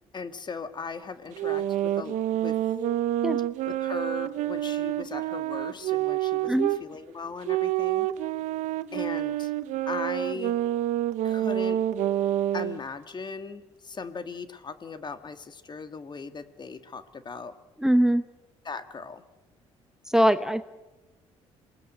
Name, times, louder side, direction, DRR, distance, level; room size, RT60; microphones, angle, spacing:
voice 1, 0.1-2.6 3.7-8.1 8.9-9.5 9.9-10.6 11.2-11.8 12.5-17.6 18.7-19.2, left 4 dB, 35° left, 9 dB, 1.9 m, -38 dB
sound 1, 1.3-6.8 7.4-12.8, right 13 dB, 80° right, 0.8 m, -28 dB
voice 2, 17.8-18.2 20.1-20.6, equal, 5° right, 10 dB, 1.0 m, -22 dB
27.0 x 19.5 x 7.9 m, 1.1 s
supercardioid pair, 75°, 12 cm